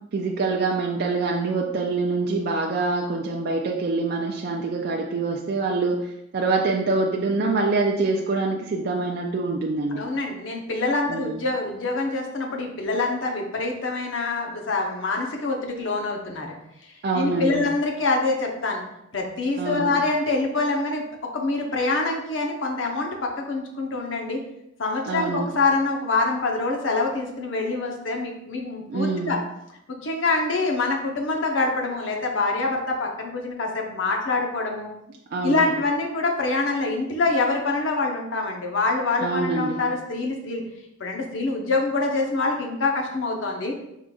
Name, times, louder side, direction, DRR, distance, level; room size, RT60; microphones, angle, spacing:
voice 1, 0.1-10.1 11.1-11.4 17.0-17.7 19.6-19.9 25.0-25.5 28.9-29.4 35.3-35.7 39.2-39.8, right 3 dB, 55° right, 0 dB, 0.4 m, -25 dB
voice 2, 9.9-16.5 17.1-18.8 19.1-21.0 21.3-24.4 24.8-29.4 30.0-34.9 35.4-40.6 41.0-43.7, left 3 dB, 75° left, 1 dB, 0.8 m, -25 dB
5.0 x 3.7 x 2.3 m, 0.84 s
head